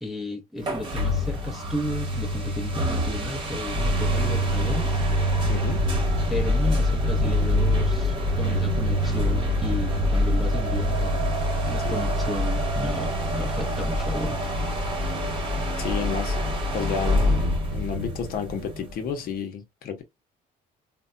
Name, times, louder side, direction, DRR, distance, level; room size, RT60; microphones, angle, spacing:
voice 1, 0.0-5.0 6.3-11.2 11.7-14.4, left 1 dB, ahead, 0.6 m, -33 dB
sound 1, 0.6-19.1, equal, 30° right, 1.0 m, -25 dB
voice 2, 5.5-5.8 11.8-12.0 15.8-20.0, left 6 dB, 60° left, 0.8 m, -31 dB
3.3 x 2.1 x 2.5 m
cardioid pair, 110°, 17 cm